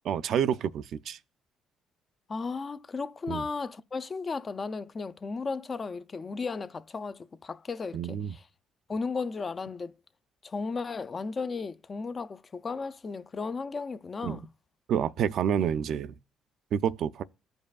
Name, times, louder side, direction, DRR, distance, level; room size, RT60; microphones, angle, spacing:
voice 1, 0.1-1.2 3.3-3.5 7.9-8.4 14.2-14.4 14.9-16.2 16.7-17.2, right 8 dB, 65° right, 0.4 m, -28 dB
voice 2, 2.3-8.4 8.9-9.9 10.4-14.5, left 4 dB, 30° left, 0.4 m, -35 dB
14.5 x 5.3 x 2.3 m
cardioid pair, 105°, 0 cm